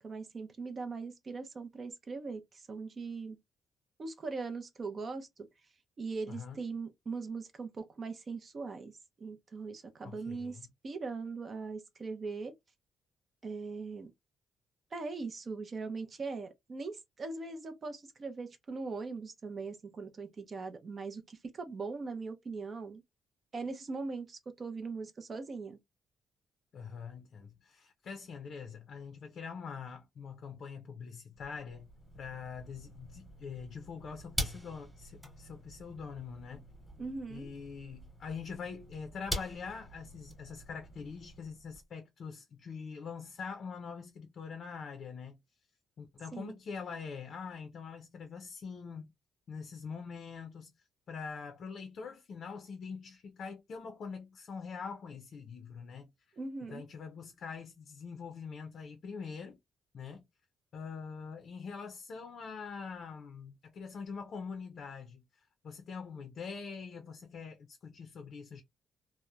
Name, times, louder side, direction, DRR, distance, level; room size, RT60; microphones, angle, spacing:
voice 1, 0.0-3.4 4.0-5.5 6.0-12.5 13.4-14.1 14.9-23.0 23.5-25.8 37.0-37.5 46.3-46.6 56.4-56.8, right 4 dB, 40° right, 0.5 m, -40 dB
voice 2, 6.3-6.6 10.0-10.5 26.7-31.9 32.1-36.6 37.3-45.4 46.0-49.1 49.5-50.7 51.1-56.1 56.7-59.6 59.9-60.2 60.7-68.6, left 5 dB, 55° left, 0.5 m, -44 dB
sound 1, 31.3-41.8, equal, 5° right, 1.1 m, -44 dB
2.8 x 2.0 x 2.2 m
cardioid pair, 95°, 0 cm